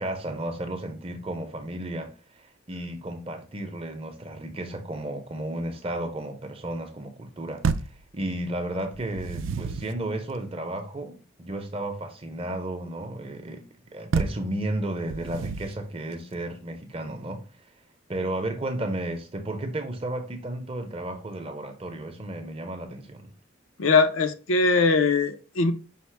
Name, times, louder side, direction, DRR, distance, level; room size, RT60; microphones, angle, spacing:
voice 1, 0.0-2.1 2.4-7.6 8.1-13.6 13.9-17.4 18.1-23.3, right 1 dB, 30° right, 0.7 m, -33 dB
sound 1, 7.6-8.0 8.9-10.0 14.1-14.5 15.1-15.8, right 5 dB, 75° right, 0.4 m, -29 dB
voice 2, 23.8-25.7, left 4 dB, 85° left, 0.6 m, -21 dB
5.6 x 2.0 x 4.4 m
head